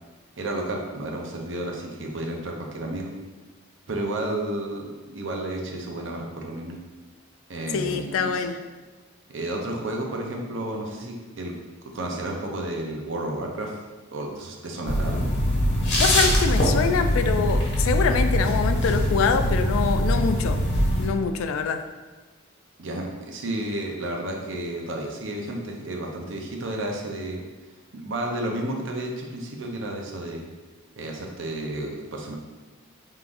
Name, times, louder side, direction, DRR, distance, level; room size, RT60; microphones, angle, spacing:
voice 1, 0.4-3.1 3.9-6.8 7.5-8.4 9.3-11.6 11.9-13.8 14.1-15.3 22.8-27.4 27.9-30.4 31.0-32.3, right 1 dB, 65° right, 1 dB, 0.7 m, -31 dB
voice 2, 7.7-8.6 16.0-20.6 21.0-21.8, left 5 dB, 80° left, 7 dB, 0.3 m, -25 dB
sound 1, 14.9-21.1, equal, 55° left, 1.0 m, -22 dB
4.7 x 3.7 x 2.5 m, 1.3 s
head